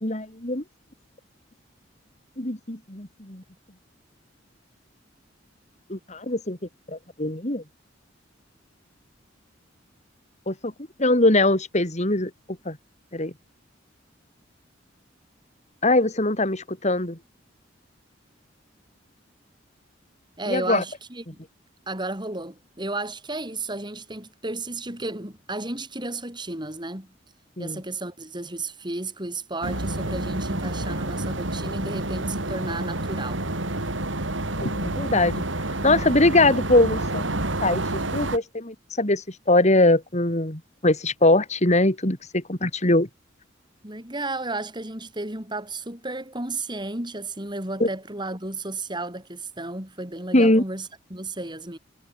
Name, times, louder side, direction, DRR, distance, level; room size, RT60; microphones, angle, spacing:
voice 1, 0.0-0.6 2.4-3.4 5.9-6.6 6.9-7.6 10.5-10.7 11.0-12.3 12.7-12.8 13.1-13.3 15.8-17.2 20.5-20.8 27.6-27.8 34.6-35.4 35.8-43.1 47.8-47.9 50.3-50.6, left 2 dB, 35° left, 3.7 m, -22 dB
voice 2, 20.4-21.4 21.9-27.1 27.6-33.4 43.8-51.8, right 2 dB, 25° right, 7.0 m, -33 dB
sound 1, 29.6-38.4, right 1 dB, 85° right, 4.6 m, -29 dB
head